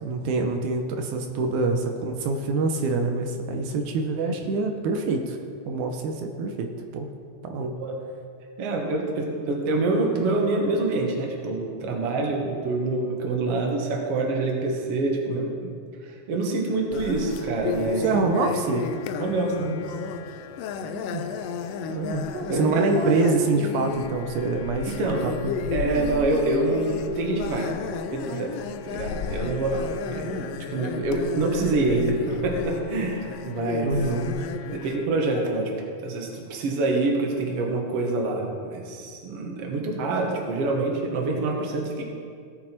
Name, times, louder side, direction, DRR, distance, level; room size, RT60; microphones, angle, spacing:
voice 1, 0.0-5.4 5.7-7.1 7.4-7.8 18.0-18.9 20.8-21.2 21.9-22.2 22.5-25.0 25.2-25.6 33.8-34.3, right 3 dB, 85° right, 4 dB, 2.2 m, -25 dB
voice 2, 8.6-15.7 16.3-18.3 19.2-19.8 22.3-23.2 24.9-25.2 25.7-27.7 28.1-28.6 28.8-33.9 34.7-35.7 36.0-42.0, right 2 dB, 60° right, 1 dB, 2.2 m, -26 dB
sound 1, 16.9-35.1, left 6 dB, 85° left, 1.4 m, -33 dB
17.0 x 6.3 x 4.5 m, 2.3 s
omnidirectional pair, 3.4 m